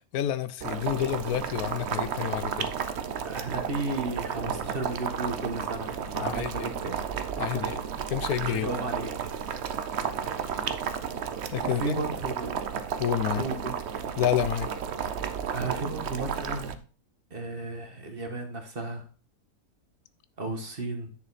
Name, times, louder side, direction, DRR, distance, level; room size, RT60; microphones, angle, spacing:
voice 1, 0.0-2.7 6.2-6.7 7.4-8.7 10.4-10.6 11.5-11.9 13.0-13.4 14.2-14.7, left 11 dB, 85° left, 1.1 m, -29 dB
Boiling, 0.6-16.7, right 7 dB, 55° right, 0.9 m, -33 dB
voice 2, 3.2-7.0 7.4-7.7 8.5-10.6 11.6-12.6 13.4-13.7 15.5-16.8 17.3-19.0 20.4-21.1, right 2 dB, 40° right, 1.6 m, -34 dB
10.0 x 6.7 x 4.1 m
omnidirectional pair, 1.5 m